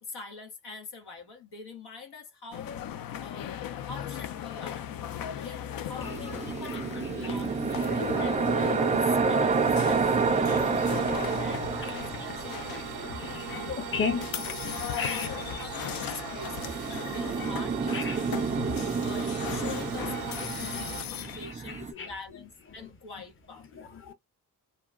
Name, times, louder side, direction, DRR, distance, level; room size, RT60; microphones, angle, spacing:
voice 1, 0.0-4.9 5.3-10.0 10.3-13.0 13.7-13.8 14.6-18.3 19.0-23.8, left 4 dB, 85° left, 1.3 m, -45 dB
sound 1, 2.5-21.5, left 10 dB, 60° left, 0.5 m, -38 dB
sound 2, 5.8-21.0, right 11 dB, 75° right, 0.5 m, -41 dB
sound 3, 6.0-15.4 16.2-21.9, right 4 dB, 20° right, 0.3 m, -29 dB
voice 2, 11.7-12.3 13.2-14.3 14.7-15.7 16.1-16.2 17.9-18.2 18.7-18.8 20.1-20.2 20.6-20.8 21.2-22.1 22.8-22.9 23.7-24.1, left 5 dB, 30° left, 0.8 m, -36 dB
2.9 x 2.2 x 2.3 m
cardioid pair, 65°, 39 cm